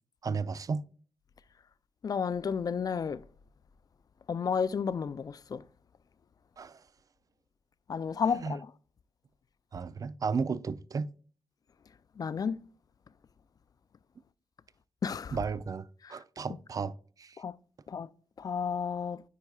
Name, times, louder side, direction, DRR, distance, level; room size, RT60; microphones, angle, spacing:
voice 1, 0.2-0.8 6.6-6.8 8.3-8.6 9.7-11.1 15.3-17.4, right 5 dB, 40° right, 0.4 m, -34 dB
voice 2, 2.0-3.2 4.3-5.6 7.9-8.7 12.2-12.6 15.0-15.4 16.0-16.2 17.4-17.5 17.9-18.1 18.4-19.2, left 6 dB, 45° left, 0.4 m, -32 dB
9.8 x 4.7 x 2.3 m
cardioid pair, 80°, 9 cm